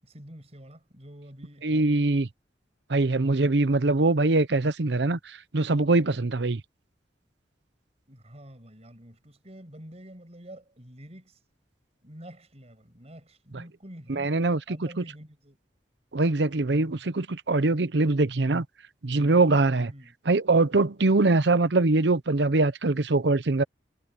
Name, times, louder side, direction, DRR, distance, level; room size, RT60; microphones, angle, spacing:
voice 1, 0.0-2.1 8.1-11.4 12.0-15.6 19.9-20.1, equal, 40° right, 6.7 m, -47 dB
voice 2, 1.6-2.3 2.9-6.6 14.1-14.8 16.1-18.6 19.0-19.9 20.3-23.6, right 2 dB, 70° right, 0.8 m, -23 dB
head